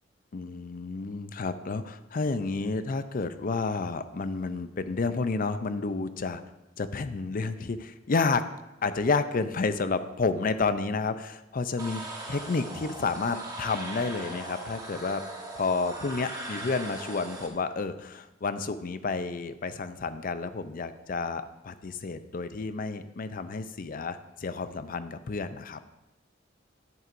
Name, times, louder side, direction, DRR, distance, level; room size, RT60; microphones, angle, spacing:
voice 1, 0.3-6.4 6.8-8.4 8.8-12.0 12.3-15.2 15.5-25.8, left 4 dB, 45° left, 11 dB, 0.5 m, -30 dB
sound 1, 11.8-17.5, right 2 dB, 20° right, 1.3 m, -39 dB
11.0 x 7.5 x 2.6 m, 0.96 s
head